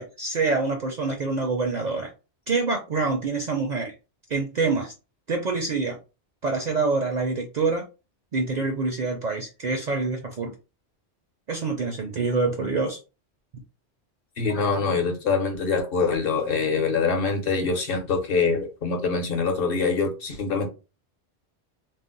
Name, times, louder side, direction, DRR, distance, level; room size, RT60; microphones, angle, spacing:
voice 1, 0.0-2.1 2.5-3.9 4.3-4.9 5.3-6.0 6.4-7.8 8.3-10.5 11.5-13.0, right 3 dB, 55° right, 0.5 m, -26 dB
voice 2, 14.4-20.7, left 4 dB, 60° left, 0.8 m, -24 dB
2.5 x 2.0 x 3.7 m
omnidirectional pair, 1.2 m